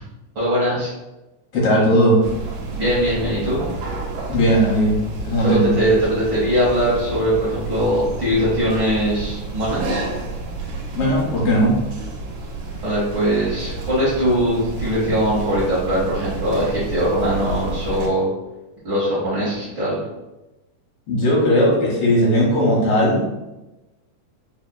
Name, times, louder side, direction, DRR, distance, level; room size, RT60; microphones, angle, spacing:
voice 1, 0.3-0.9 2.7-3.7 5.4-10.0 12.8-18.3 18.8-20.0, equal, 70° right, -10 dB, 1.1 m, -21 dB
voice 2, 1.5-2.2 4.3-4.9 5.2-5.7 10.9-11.7 21.1-23.2, equal, 65° left, -5 dB, 1.5 m, -17 dB
sound 1, 2.2-18.1, right 3 dB, 85° right, 2.1 m, -30 dB
4.9 x 2.7 x 2.2 m, 1.0 s
omnidirectional pair, 3.6 m